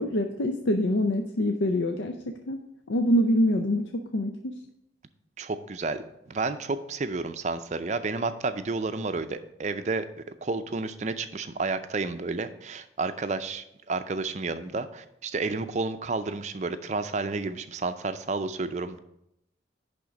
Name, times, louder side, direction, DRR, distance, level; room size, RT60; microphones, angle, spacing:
voice 1, 0.0-2.1 2.5-2.6 2.9-3.8 4.1-4.5, left 1 dB, 85° left, 5 dB, 0.6 m, -25 dB
voice 2, 5.4-10.1 10.4-19.0, right 3 dB, 40° right, 10 dB, 0.5 m, -31 dB
10.5 x 3.6 x 5.2 m, 0.82 s
head